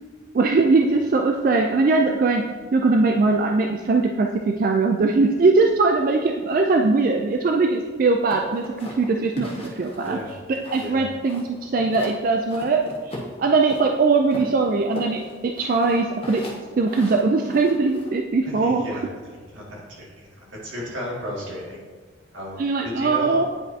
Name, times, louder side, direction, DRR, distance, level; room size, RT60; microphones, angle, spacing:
voice 1, 0.3-2.4 2.7-10.2 10.5-16.4 16.8-18.9 22.6-23.5, right 3 dB, 45° right, 3 dB, 0.3 m, -21 dB
sound 1, 8.3-11.0 11.3-12.2 12.5-13.9 14.3-18.1, left 1 dB, 30° left, 1.1 m, -37 dB
voice 2, 18.5-19.0 19.5-21.8 22.3-23.4, left 1 dB, 85° right, -4 dB, 2.0 m, -34 dB
9.6 x 4.9 x 2.7 m, 1.5 s
head